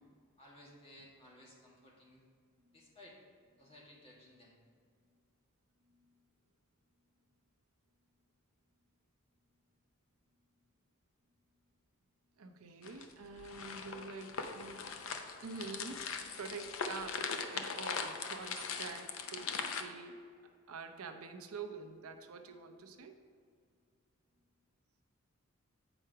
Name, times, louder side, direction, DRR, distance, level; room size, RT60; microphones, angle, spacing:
voice 1, 0.4-2.2 2.7-3.2 3.6-4.6, left 1 dB, 25° left, -4 dB, 1.7 m, -58 dB
voice 2, 12.4-14.9 15.4-16.1 16.3-20.2 20.7-23.1, right 4 dB, 80° right, 6 dB, 0.6 m, -46 dB
sound 1, 12.8-19.8, left 5 dB, 70° left, 0.6 m, -40 dB
8.0 x 4.8 x 4.6 m, 2.1 s
head